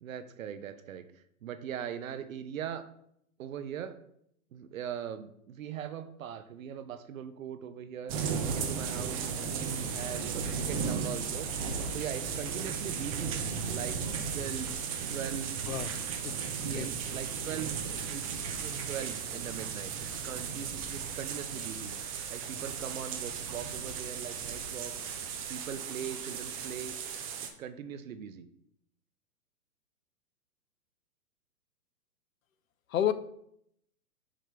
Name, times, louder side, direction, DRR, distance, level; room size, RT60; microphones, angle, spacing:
voice 1, 0.0-2.9 3.4-4.0 4.5-8.2 8.5-11.5 11.9-13.4 13.7-14.0 14.3-14.7 15.1-15.7 16.6-18.3 18.6-21.9 22.3-26.9 27.6-28.5, right 8 dB, 60° right, 11 dB, 0.7 m, -40 dB
sound 1, 8.1-27.5, right 6 dB, 25° right, 0.5 m, -35 dB
voice 2, 16.2-16.9 32.9-33.1, left 10 dB, 65° left, 13 dB, 0.6 m, -31 dB
5.8 x 5.0 x 3.4 m, 0.71 s
hypercardioid pair, 125°, 45 cm